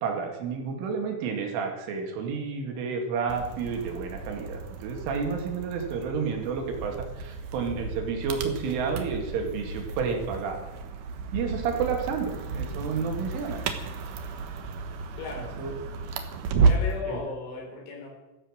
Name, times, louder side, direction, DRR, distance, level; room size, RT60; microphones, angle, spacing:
voice 1, 0.0-10.6 11.3-13.6 15.6-15.7 17.1-17.2, right 5 dB, 85° right, 3 dB, 4.8 m, -30 dB
sound 1, 3.3-17.0, right 4 dB, 65° right, 2.1 m, -32 dB
voice 2, 15.2-15.5 16.6-18.1, left 4 dB, 75° left, 1 dB, 6.4 m, -36 dB
16.0 x 14.0 x 6.5 m, 1.0 s
omnidirectional pair, 5.5 m